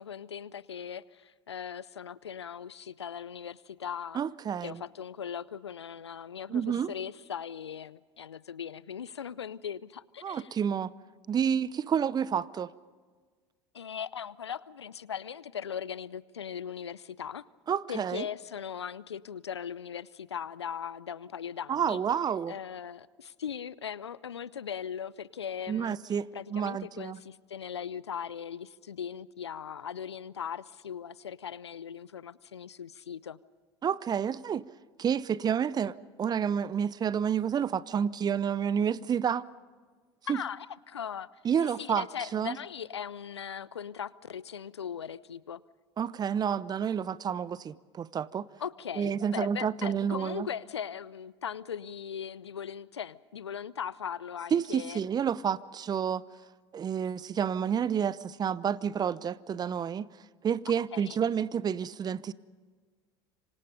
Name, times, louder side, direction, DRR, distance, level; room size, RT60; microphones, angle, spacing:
voice 1, 0.0-4.2 4.6-10.5 13.7-17.4 17.9-22.0 22.5-26.0 26.3-33.4 40.3-41.3 41.8-45.6 48.6-55.0 60.9-61.2, left 8 dB, 85° left, 0.6 m, -39 dB
voice 2, 4.1-4.8 6.5-6.9 10.2-10.9 11.3-12.7 17.7-18.2 21.7-22.5 25.7-27.2 33.8-34.7 35.0-39.5 40.3-40.4 41.4-42.1 42.3-42.6 46.0-48.5 49.0-50.5 54.5-56.2 56.7-60.1 60.4-62.3, right 8 dB, 30° right, 0.8 m, -29 dB
27.0 x 25.0 x 5.2 m
hypercardioid pair, 75°, 14 cm